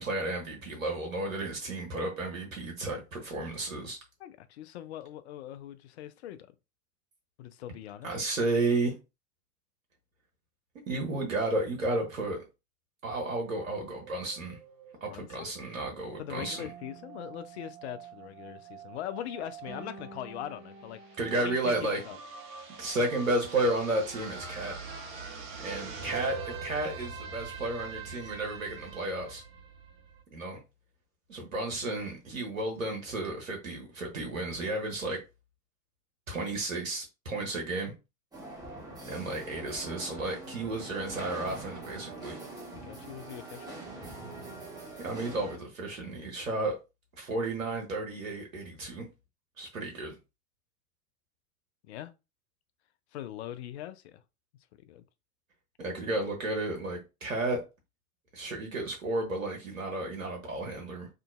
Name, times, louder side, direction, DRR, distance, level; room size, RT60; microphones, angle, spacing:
voice 1, 0.0-4.0 8.0-9.0 10.9-12.5 13.0-14.6 15.0-16.6 21.2-22.0 22.8-24.7 25.6-29.4 30.3-30.6 31.3-35.2 36.3-37.9 39.1-42.4 45.0-46.8 47.2-49.1 49.6-50.1 55.8-57.6 58.3-61.1, right 2 dB, 80° right, 0.9 m, -32 dB
voice 2, 4.2-6.5 7.4-8.1 15.1-15.5 16.2-21.0 21.4-22.2 42.7-43.8 51.9-52.1 53.1-54.2 54.9-55.0, left 12 dB, 55° left, 0.5 m, -41 dB
sound 1, 13.1-30.2, right 5 dB, 45° right, 1.1 m, -44 dB
sound 2, 38.3-45.6, right 2 dB, 10° right, 1.0 m, -44 dB
2.8 x 2.5 x 2.4 m
figure-of-eight pair, 85°, 40 cm